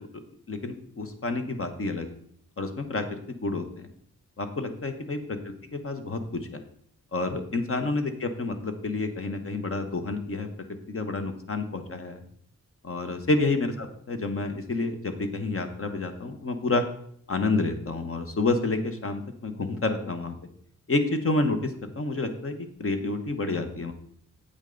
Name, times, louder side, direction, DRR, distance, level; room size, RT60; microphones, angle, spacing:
voice 1, 0.5-2.2 2.6-3.9 4.4-6.6 7.1-10.5 10.9-12.2 12.8-16.8 17.3-20.4 20.9-23.9, left 3 dB, 45° left, 7 dB, 1.2 m, -29 dB
9.0 x 8.1 x 3.9 m, 0.65 s
wide cardioid pair, 145°, 30 cm